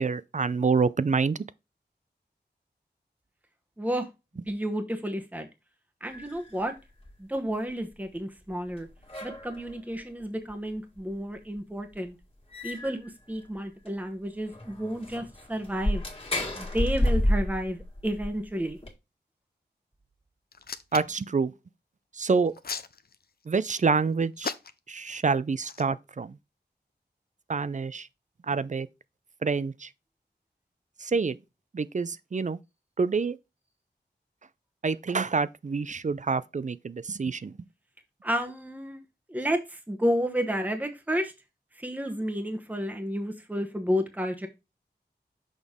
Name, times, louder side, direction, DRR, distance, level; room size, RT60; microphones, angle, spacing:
voice 1, 0.0-1.4 20.9-21.5 22.1-22.5 23.5-24.5 24.9-26.4 27.5-28.1 28.5-28.9 29.4-29.9 31.0-31.4 31.7-32.6 33.0-33.4 34.8-37.5, right 4 dB, 45° right, 0.5 m, -27 dB
voice 2, 3.8-4.1 4.5-5.5 6.0-6.7 7.2-8.9 9.2-12.1 12.6-16.0 16.6-18.8 38.2-39.0 39.3-41.3 41.8-44.5, equal, 10° right, 1.0 m, -31 dB
sound 1, 6.1-6.6 7.1-7.2 8.5-8.6 8.8-9.7 10.5-10.6 11.0-11.1 11.6-11.7 11.9-12.0 12.5-13.1 13.6-13.7 13.9-14.0 14.5-18.9, left 1 dB, 30° left, 2.0 m, -30 dB
Hands, 20.5-21.2 22.3-23.5 24.4-25.0 25.6-25.8, left 5 dB, 60° left, 0.6 m, -36 dB
6.3 x 5.2 x 3.6 m
wide cardioid pair, 60°, 18 cm